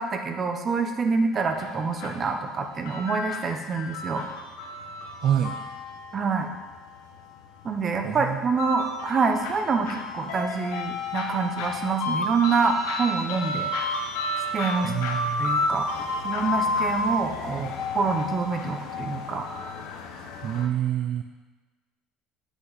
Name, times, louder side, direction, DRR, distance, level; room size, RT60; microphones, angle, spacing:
voice 1, 0.0-4.2 6.1-6.5 7.6-13.7 14.5-14.9 15.4-15.9 16.2-19.4, right 4 dB, 30° right, 5 dB, 0.8 m, -26 dB
sound 1, 1.3-20.7, left 2 dB, 90° left, 1.0 m, -32 dB
voice 2, 5.2-5.6 8.0-8.4 14.8-15.5 20.4-21.2, right 10 dB, 50° right, 6 dB, 0.4 m, -26 dB
8.1 x 8.1 x 4.0 m, 1.3 s
cardioid pair, 150°, 0 cm